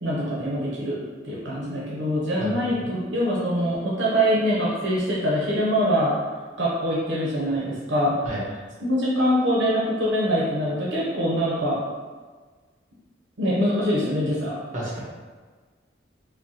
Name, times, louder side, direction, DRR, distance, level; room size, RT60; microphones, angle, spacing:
voice 1, 0.0-6.2 6.6-8.2 8.8-11.8 13.4-14.5, equal, 75° right, -6 dB, 0.7 m, -24 dB
voice 2, 2.4-2.9 8.2-8.4 14.7-15.0, right 1 dB, 40° right, -6 dB, 1.2 m, -32 dB
5.0 x 2.2 x 2.8 m, 1.4 s
head